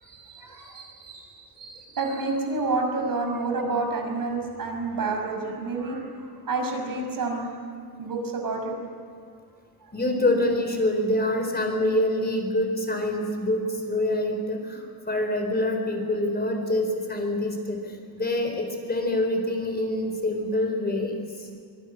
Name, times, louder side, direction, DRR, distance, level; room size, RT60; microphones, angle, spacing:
voice 1, 0.0-6.1 6.4-7.5 8.0-8.7, right 3 dB, 55° right, 2 dB, 6.0 m, -29 dB
voice 2, 9.9-21.5, left 1 dB, 25° left, 4 dB, 4.5 m, -26 dB
25.0 x 19.0 x 10.0 m, 2.1 s
cardioid pair, 105°, 42 cm